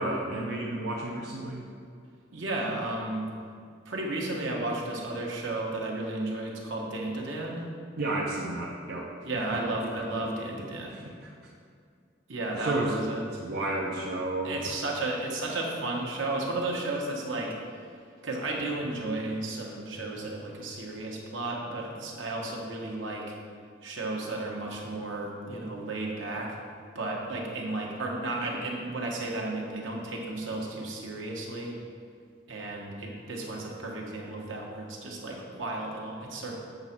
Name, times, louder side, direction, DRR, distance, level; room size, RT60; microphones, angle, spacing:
voice 1, 0.0-1.6 8.0-9.1 9.5-9.9 10.1-10.3 10.9-11.3 12.5-13.0 13.3-14.7, right 2 dB, 55° right, -4 dB, 0.8 m, -32 dB
voice 2, 2.3-3.2 3.8-7.7 9.2-10.9 12.3-13.2 14.4-17.5 18.2-23.3 23.8-26.6 26.9-31.7 32.5-36.5, right 2 dB, 80° right, -1 dB, 1.4 m, -33 dB
8.1 x 4.1 x 6.0 m, 2.3 s
head